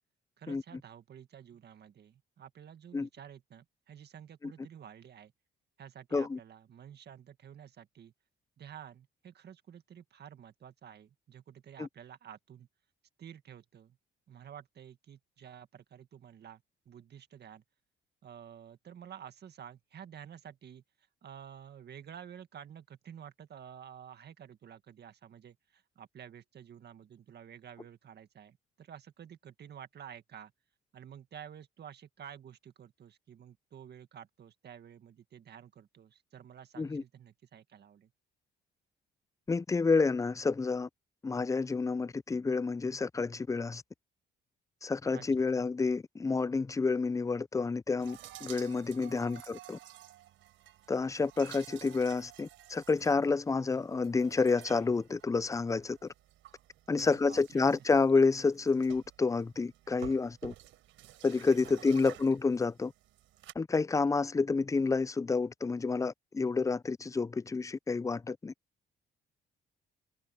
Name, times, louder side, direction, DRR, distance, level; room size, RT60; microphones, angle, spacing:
voice 1, 0.4-5.3 5.8-8.1 8.6-12.7 13.2-14.0 14.3-17.6 18.2-30.5 30.9-38.1 45.1-45.6 49.1-49.5 57.0-57.8 61.6-62.2, right 9 dB, 55° right, 1.9 m, -51 dB
voice 2, 39.5-40.9 41.2-43.8 44.8-49.8 50.9-56.1 56.9-60.5 61.2-62.9 63.6-68.5, left 4 dB, 15° left, 0.4 m, -29 dB
sound 1, 48.0-63.5, right 14 dB, 85° right, 4.7 m, -53 dB
cardioid pair, 90°, 20 cm